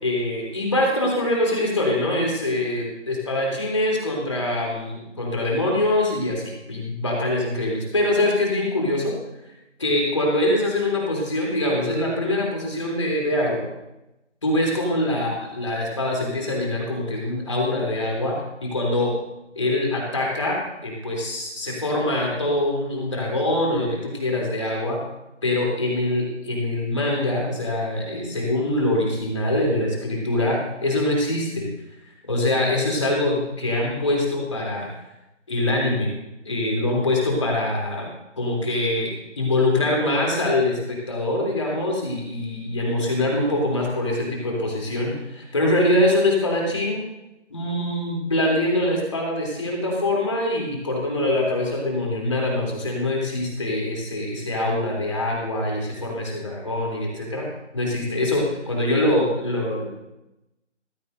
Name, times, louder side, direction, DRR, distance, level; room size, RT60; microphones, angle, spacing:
voice 1, 0.0-9.1 9.8-13.6 14.4-19.1 19.5-25.0 25.4-31.7 32.3-34.9 35.5-36.1 36.4-38.1 38.4-47.0 47.5-57.5 57.7-59.9, left 1 dB, 25° left, -2 dB, 3.2 m, -24 dB
18.5 x 17.0 x 2.7 m, 0.92 s
figure-of-eight pair, 165°, 37 cm